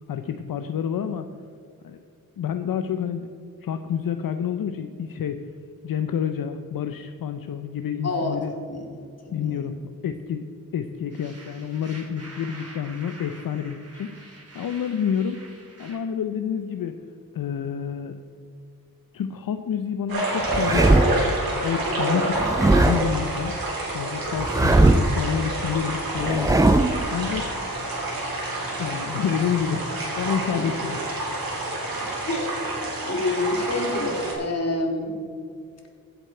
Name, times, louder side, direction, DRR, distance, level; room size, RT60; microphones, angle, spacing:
voice 1, 0.1-1.3 1.8-2.0 2.4-3.3 3.6-5.4 5.8-8.5 9.3-9.8 10.0-10.5 10.7-14.2 14.5-15.4 15.8-16.9 17.3-18.2 19.1-21.3 21.6-23.6 23.9-26.7 27.1-27.5 28.8-29.9 30.2-31.0, left 8 dB, 75° left, 8 dB, 0.6 m, -28 dB
voice 2, 8.0-8.4 8.7-8.9 9.2-9.7 22.0-22.2 30.5-30.7 31.8-31.9 32.2-32.5 33.0-35.2, left 2 dB, 45° left, 2 dB, 2.2 m, -27 dB
sound 1, 11.1-16.0, right 2 dB, 45° right, 2.9 m, -46 dB
sound 2, 20.1-34.3, right 2 dB, 85° right, 3.4 m, -28 dB
sound 3, 20.4-21.3 22.4-23.2 24.4-25.2 26.2-27.1, right 2 dB, 10° right, 0.4 m, -19 dB
15.5 x 8.0 x 4.4 m, 2.4 s
wide cardioid pair, 85°, 34 cm